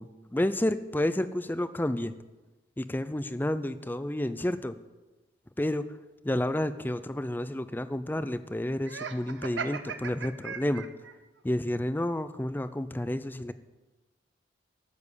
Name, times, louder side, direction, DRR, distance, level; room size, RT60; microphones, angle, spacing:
voice 1, 0.0-2.1 2.8-4.8 5.6-5.9 6.2-10.9 11.4-13.5, left 1 dB, 10° left, 13 dB, 0.4 m, -30 dB
Laughter, 8.8-11.1, right 6 dB, 80° right, 0.8 m, -38 dB
13.5 x 7.1 x 8.3 m, 1.2 s
head